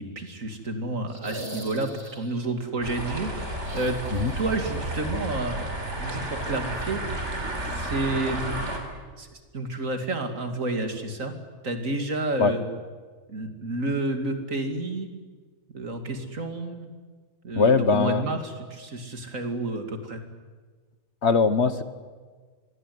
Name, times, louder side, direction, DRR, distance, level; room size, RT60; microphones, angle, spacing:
voice 1, 0.0-4.0 4.4-7.2 7.6-8.6 9.2-11.3 11.6-12.6 13.3-15.1 15.7-16.9 17.4-20.2, right 2 dB, 75° right, 6 dB, 3.0 m, -30 dB
sound 1, 1.1-2.5 3.6-4.8 5.0-5.1 6.8-6.9, right 1 dB, 20° right, 2.5 m, -40 dB
sound 2, 2.8-8.8, right 1 dB, 60° right, 4.3 m, -32 dB
voice 2, 17.5-18.2 21.2-21.8, left 4 dB, 55° left, 12 dB, 1.5 m, -21 dB
26.5 x 20.5 x 9.5 m, 1.4 s
omnidirectional pair, 1.4 m